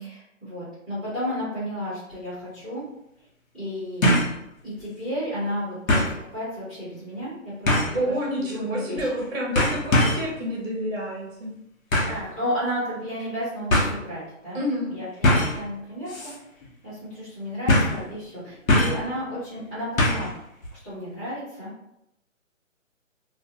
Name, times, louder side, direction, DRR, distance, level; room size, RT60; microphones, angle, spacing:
voice 1, 0.0-2.8 3.5-4.1 4.6-9.1 12.0-14.6 14.9-16.3 16.8-20.3 20.7-21.7, equal, 5° left, -16 dB, 0.7 m, -32 dB
sound 1, 2.1-2.2 4.0-4.4 4.8-4.9 5.9-6.2 7.7-8.0 9.0-9.2 9.6-10.3 11.9-12.2 13.2-13.3 13.7-13.9 15.2-15.6 16.1-16.4 16.6-16.7 17.7-18.0 18.7-19.1 20.0-20.3 20.6-20.7, left 1 dB, 80° left, 0.9 m, -21 dB
voice 2, 7.9-11.5 14.5-14.9, equal, 50° right, -2 dB, 0.7 m, -28 dB
2.3 x 2.3 x 2.6 m, 0.80 s
hypercardioid pair, 160°, 40 cm